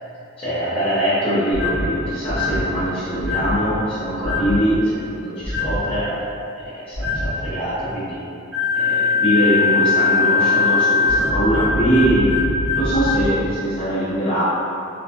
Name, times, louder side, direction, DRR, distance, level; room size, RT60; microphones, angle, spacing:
voice 1, 0.4-6.2 6.5-8.2 8.7-12.3 12.8-14.4, equal, 25° left, -12 dB, 0.6 m, -22 dB
sound 1, 1.5-1.9 2.3-2.6 3.2-3.6 4.2-4.6 5.4-5.8 6.9-7.3 8.5-13.3, left 3 dB, 60° right, 0.7 m, -20 dB
2.4 x 2.2 x 2.5 m, 2.6 s
head